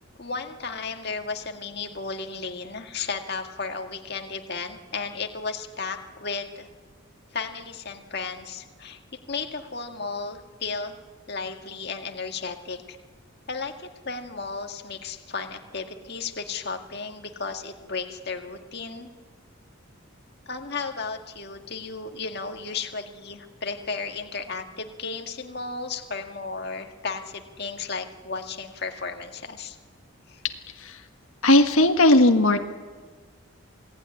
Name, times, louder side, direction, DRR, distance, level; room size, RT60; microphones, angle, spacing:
voice 1, 0.2-6.7 7.3-11.0 11.3-13.0 13.5-19.1 20.5-29.8 30.3-30.4, left 4 dB, 50° left, 4 dB, 1.9 m, -34 dB
voice 2, 31.4-32.6, left 1 dB, 80° left, 5 dB, 1.7 m, -17 dB
27.5 x 18.5 x 9.8 m, 1.4 s
head